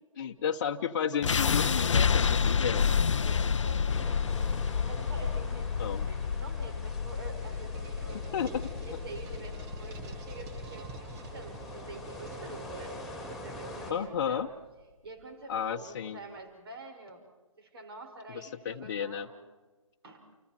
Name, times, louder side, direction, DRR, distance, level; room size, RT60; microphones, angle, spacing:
voice 1, 0.1-2.9 5.8-6.1 8.3-8.7 13.9-14.5 15.5-16.2 18.3-19.3, left 8 dB, 40° left, 1 dB, 1.1 m, -32 dB
sound 1, 1.2-13.3, left 6 dB, 65° left, 0.7 m, -30 dB
voice 2, 2.5-4.2 4.8-8.4 8.8-13.0 13.3-14.4 15.0-17.2 17.6-19.4 20.0-20.2, right 3 dB, 45° right, 4 dB, 5.7 m, -47 dB
sound 2, 3.9-13.9, left 1 dB, ahead, 3.9 m, -45 dB
sound 3, 7.1-14.6, right 4 dB, 20° right, 1.5 m, -48 dB
29.5 x 29.5 x 4.5 m, 1.3 s
figure-of-eight pair, 140°, 17 cm